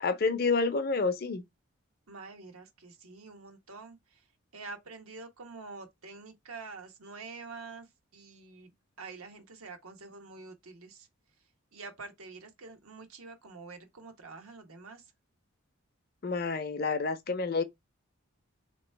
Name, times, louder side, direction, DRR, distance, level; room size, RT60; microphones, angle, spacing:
voice 1, 0.0-1.4 16.2-17.6, left 4 dB, 45° left, 0.6 m, -29 dB
voice 2, 2.1-4.0 4.5-7.9 8.1-8.7 9.0-11.1 11.7-15.0, right 4 dB, 85° right, 1.1 m, -46 dB
3.2 x 3.0 x 4.4 m
head